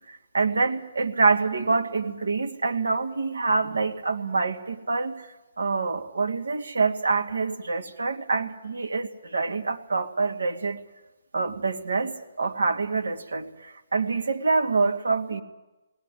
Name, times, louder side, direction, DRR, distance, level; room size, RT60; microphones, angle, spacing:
voice 1, 0.1-5.1 5.6-10.8 11.3-15.4, right 4 dB, 85° right, 5 dB, 2.3 m, -26 dB
19.5 x 19.5 x 10.0 m, 1.0 s
hypercardioid pair, 145°, 0 cm